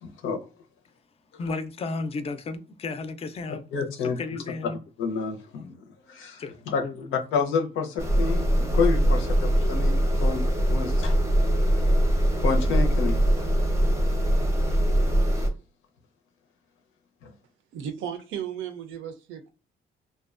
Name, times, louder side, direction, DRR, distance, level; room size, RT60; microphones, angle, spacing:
voice 1, 0.0-0.4 3.7-4.2 5.0-5.7 6.1-9.9 10.2-11.2 12.4-13.5 15.3-15.4 17.2-17.3, left 5 dB, 90° left, 0.6 m, -29 dB
voice 2, 1.4-3.7 3.9-4.8 6.4-7.1, left 3 dB, 30° left, 0.4 m, -34 dB
sound 1, 8.0-15.5, equal, 15° right, 0.6 m, -22 dB
voice 3, 17.7-19.5, right 9 dB, 80° right, 0.5 m, -35 dB
2.5 x 2.2 x 2.4 m
cardioid pair, 90°, 20 cm